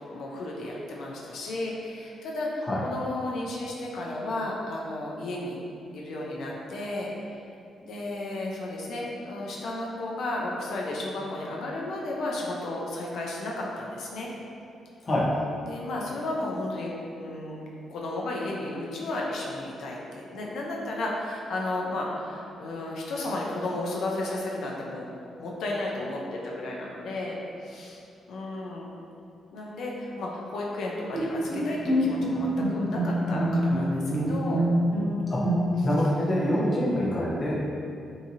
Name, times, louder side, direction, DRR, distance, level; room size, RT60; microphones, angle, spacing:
voice 1, 0.1-5.6 5.9-7.4 7.8-14.3 15.7-16.9 17.2-25.1 25.4-28.0 28.3-28.9 29.5-34.6 36.5-36.7, left 2 dB, 70° left, -3 dB, 0.4 m, -33 dB
voice 2, 15.0-15.4 35.3-35.4 35.8-37.6, left 1 dB, 35° left, -7 dB, 0.7 m, -25 dB
Bowed string instrument, 31.1-36.0, equal, 50° right, 0.9 m, -26 dB
2.7 x 2.6 x 2.5 m, 2.5 s
cardioid pair, 135°, 0 cm